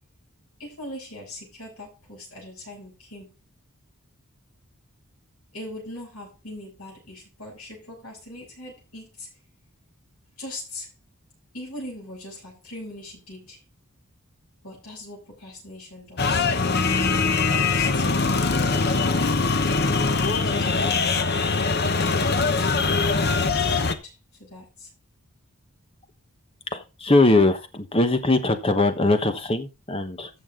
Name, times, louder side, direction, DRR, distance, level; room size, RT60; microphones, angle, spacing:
voice 1, 0.6-3.3 5.5-9.3 10.4-10.9 11.5-13.6 14.6-16.5 17.7-19.4 20.4-21.3 21.6-24.9, left 1 dB, 85° left, -3 dB, 7.5 m, -41 dB
sound 1, 16.2-24.0, left 4 dB, 45° left, 0.9 m, -22 dB
voice 2, 26.7-30.3, left 2 dB, 25° left, 8 dB, 1.2 m, -21 dB
14.5 x 6.4 x 3.8 m, 0.28 s
head